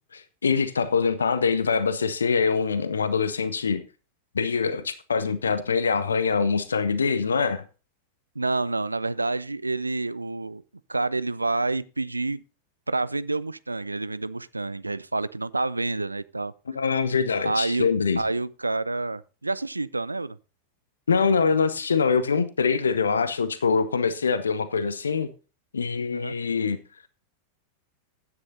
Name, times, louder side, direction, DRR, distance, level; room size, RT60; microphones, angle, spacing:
voice 1, 0.1-3.8 4.3-7.6 16.7-18.2 21.1-25.3 25.7-26.8, left 5 dB, 70° left, 0.7 m, -24 dB
voice 2, 8.4-10.6 10.9-12.4 12.9-16.5 17.4-17.9 18.2-20.4 26.1-26.3, right 3 dB, 80° right, 0.4 m, -28 dB
15.5 x 9.6 x 2.7 m
figure-of-eight pair, 90°, 0 cm